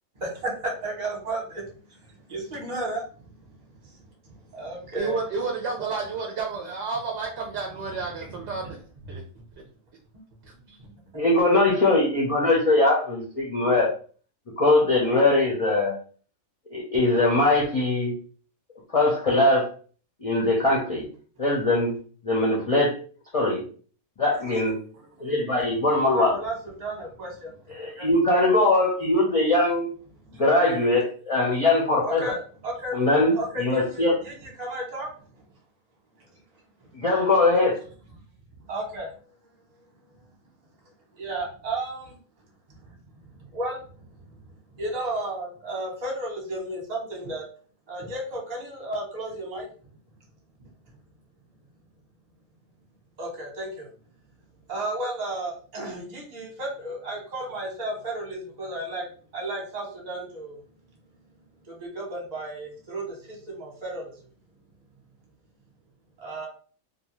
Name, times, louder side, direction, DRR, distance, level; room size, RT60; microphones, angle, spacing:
voice 1, 0.8-4.0 4.6-5.2 8.2-8.7 9.1-9.2 11.1-11.2 24.4-25.3 26.1-28.1 30.2-30.4 32.0-33.0 33.3-35.1 36.8-36.9 38.5-39.1 41.1-42.2 42.7-42.9 43.3-43.9 44.3-44.4 44.7-47.4 47.9-49.7 53.2-53.9 54.7-59.1 59.3-60.6 61.7-64.2 66.2-66.5, right 1 dB, 35° right, -1 dB, 1.0 m, -34 dB
voice 2, 4.9-8.8 9.1-9.2, right 4 dB, 65° right, 0 dB, 0.8 m, -30 dB
voice 3, 11.1-13.9 14.6-16.0 16.7-18.1 18.9-19.7 20.2-21.1 21.4-22.0 22.2-23.0 23.3-23.6 24.2-24.8 25.2-26.4 27.7-29.9 30.3-32.4 32.9-34.2 36.9-37.8, left 2 dB, 50° left, -4 dB, 0.4 m, -21 dB
2.6 x 2.3 x 3.0 m, 0.42 s
omnidirectional pair, 1.4 m